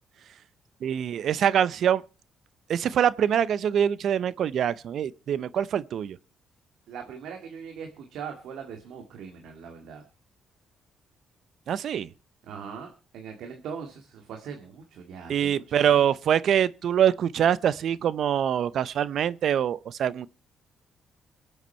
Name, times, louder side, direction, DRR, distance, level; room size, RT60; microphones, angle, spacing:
voice 1, 0.8-2.0 2.7-6.2 11.7-12.1 15.3-20.3, right 9 dB, 65° right, 0.7 m, -24 dB
voice 2, 6.9-10.0 12.5-16.0, right 6 dB, 80° right, 2.1 m, -40 dB
24.0 x 8.1 x 4.4 m
cardioid pair, 90°, 0 cm